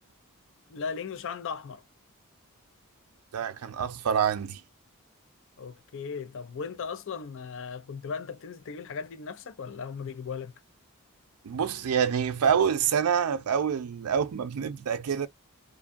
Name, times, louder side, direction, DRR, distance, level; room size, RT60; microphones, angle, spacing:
voice 1, 0.7-1.8 5.6-10.5, left 6 dB, 60° left, 0.5 m, -37 dB
voice 2, 3.3-4.6 11.4-15.3, right 7 dB, 85° right, 0.4 m, -26 dB
2.6 x 2.2 x 2.5 m
head